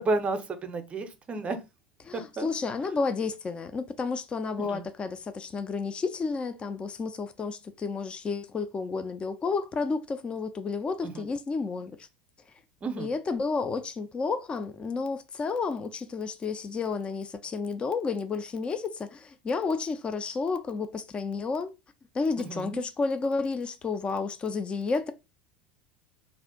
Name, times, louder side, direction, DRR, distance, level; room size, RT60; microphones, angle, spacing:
voice 1, 0.0-1.6 2.1-2.5 4.6-4.8 11.0-11.3 12.8-13.1 22.4-22.8, right 3 dB, 25° right, 0.6 m, -32 dB
voice 2, 2.1-12.1 13.0-21.7 22.1-25.1, left 4 dB, 20° left, 0.4 m, -31 dB
2.5 x 2.4 x 3.5 m
figure-of-eight pair, 75°, 5 cm